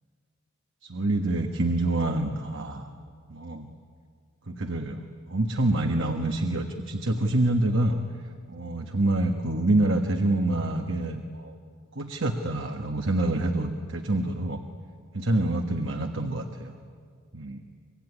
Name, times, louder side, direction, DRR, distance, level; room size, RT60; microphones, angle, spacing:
voice 1, 0.8-2.9 3.3-3.7 4.5-8.0 8.5-11.5 11.9-14.6 15.1-16.7 17.3-17.6, right 2 dB, 60° right, 4 dB, 1.4 m, -26 dB
25.0 x 23.0 x 9.9 m, 2.1 s
head